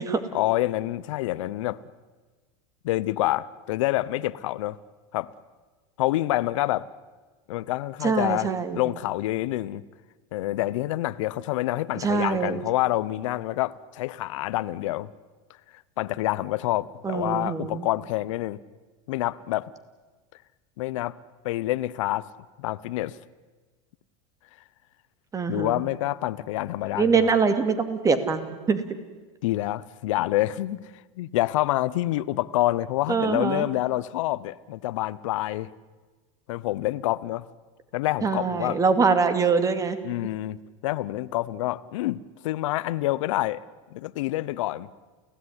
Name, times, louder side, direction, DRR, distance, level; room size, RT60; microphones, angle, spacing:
voice 1, 0.3-1.8 2.8-4.8 5.1-5.3 6.0-6.9 7.5-8.5 8.7-9.8 10.3-15.1 16.0-18.6 19.1-19.7 20.8-21.1 21.4-22.3 22.6-23.2 25.5-27.3 29.4-30.9 31.2-35.7 36.5-37.4 37.9-38.8 40.0-40.6 40.8-43.6 43.9-44.9, left 16 dB, 75° left, 17 dB, 0.9 m, -27 dB
voice 2, 8.0-8.8 11.9-12.6 17.0-17.8 25.3-25.8 26.9-28.8 33.1-33.7 38.2-40.0, right 5 dB, 20° right, 10 dB, 2.5 m, -24 dB
28.5 x 17.0 x 9.8 m, 1.3 s
supercardioid pair, 125°, 16 cm